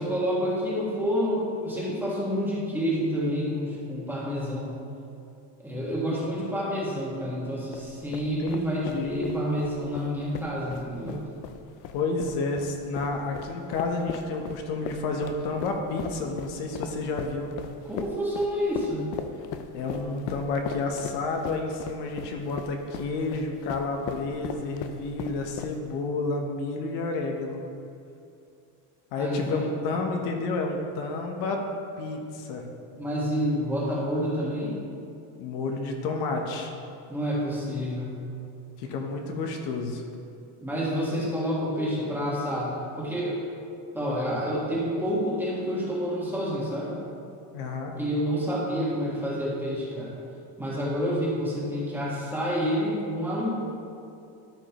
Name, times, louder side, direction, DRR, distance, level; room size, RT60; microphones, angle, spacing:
voice 1, 0.0-4.7 5.6-11.2 17.8-19.2 29.2-29.6 33.0-34.7 37.1-38.2 40.6-43.4 43.9-47.0 48.0-50.1 50.6-53.5, equal, 5° right, -7 dB, 1.5 m, -28 dB
sound 1, 7.7-26.0, left 8 dB, 50° left, 0.4 m, -39 dB
voice 2, 8.2-9.2 11.9-17.5 19.7-27.6 29.1-31.6 32.0-32.7 35.4-36.7 38.8-40.0 47.5-47.9, left 3 dB, 70° left, 2 dB, 1.0 m, -30 dB
13.0 x 5.2 x 3.0 m, 2.5 s
cardioid pair, 165°, 43 cm